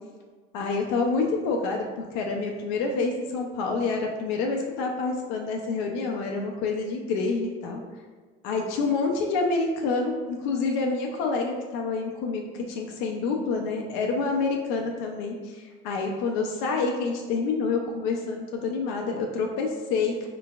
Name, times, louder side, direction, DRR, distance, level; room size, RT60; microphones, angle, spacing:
voice 1, 0.5-7.8 8.4-20.3, left 4 dB, 85° left, 1 dB, 0.5 m, -27 dB
3.8 x 3.3 x 2.3 m, 1.4 s
supercardioid pair, 85°, 21 cm